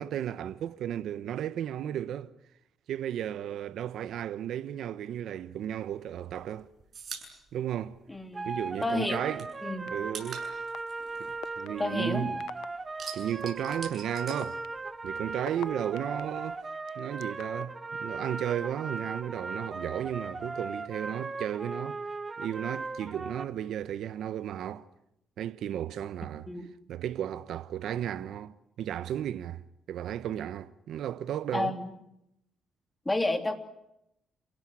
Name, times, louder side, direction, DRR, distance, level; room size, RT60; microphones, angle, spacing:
voice 1, 0.0-2.3 2.9-6.7 7.5-8.0 8.4-9.5 9.9-10.4 11.6-12.4 13.1-14.6 15.0-16.6 17.0-22.0 22.4-24.9 25.4-26.5 26.9-29.6 29.9-31.8, right 10 dB, 75° right, 0.9 m, -34 dB
sound 1, 5.9-8.7 9.0-12.3 12.6-15.2 15.4-16.6, right 6 dB, 50° right, 7.5 m, -45 dB
voice 2, 8.1-8.5 8.8-9.2 9.6-10.0 11.8-12.3 26.5-26.7 31.5-31.9 33.0-33.6, left 2 dB, 15° left, 3.0 m, -30 dB
sound 2, 8.3-23.4, right 3 dB, 25° right, 1.6 m, -38 dB
sound 3, 9.9-10.0 10.7-10.8 11.4-11.7 12.4-12.7 13.4-13.5 14.1-16.2 16.9-17.6, left 14 dB, 90° left, 0.9 m, -41 dB
29.0 x 17.0 x 10.0 m
cardioid pair, 90°, 0 cm